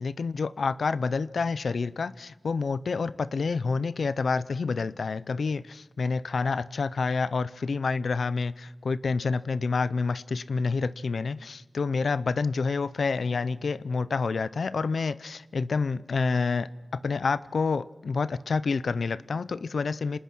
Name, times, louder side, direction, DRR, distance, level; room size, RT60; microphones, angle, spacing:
voice 1, 0.0-20.2, left 4 dB, 90° left, 17 dB, 0.6 m, -28 dB
27.0 x 19.5 x 6.2 m, 1.3 s
wide cardioid pair, 60°, 0 cm